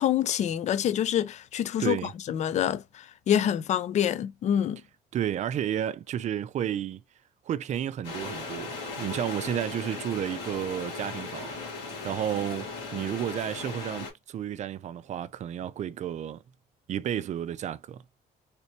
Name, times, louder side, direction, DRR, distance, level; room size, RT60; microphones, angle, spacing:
voice 1, 0.0-4.8, left 10 dB, 45° left, 0.4 m, -27 dB
voice 2, 1.8-2.1 5.1-7.0 7.5-11.6 12.0-16.4 16.9-18.0, right 10 dB, 45° right, 0.4 m, -32 dB
sound 1, 8.0-14.1, left 3 dB, 90° left, 1.7 m, -37 dB
3.3 x 3.0 x 2.8 m
cardioid pair, 110°, 17 cm